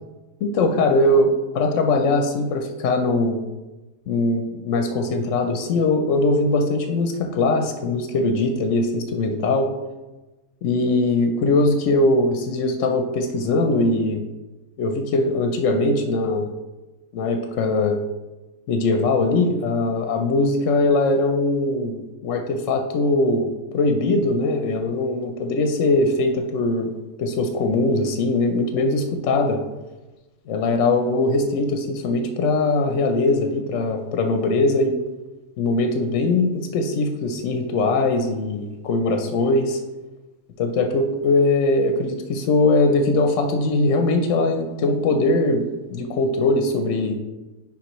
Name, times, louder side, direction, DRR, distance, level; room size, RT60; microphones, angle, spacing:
voice 1, 0.4-3.4 4.1-9.7 10.6-14.2 14.8-16.5 17.1-18.0 18.7-26.9 27.2-29.6 30.5-34.9 35.6-39.8 40.6-45.6 45.9-47.1, left 2 dB, 65° left, 5 dB, 0.8 m, -21 dB
9.5 x 3.7 x 3.0 m, 1.1 s
omnidirectional pair, 1.6 m